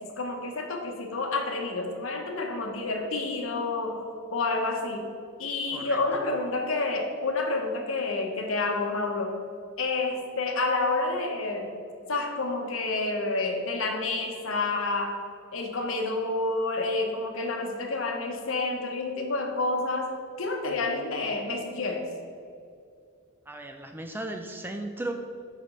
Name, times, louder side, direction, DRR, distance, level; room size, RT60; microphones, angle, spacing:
voice 1, 0.0-5.1 5.4-9.4 9.8-11.7 12.1-15.2 15.5-20.1 20.4-22.1, left 3 dB, 70° left, 3 dB, 1.0 m, -29 dB
voice 2, 23.5-25.1, right 1 dB, 10° right, 4 dB, 0.4 m, -35 dB
5.7 x 5.1 x 5.4 m, 2.3 s
head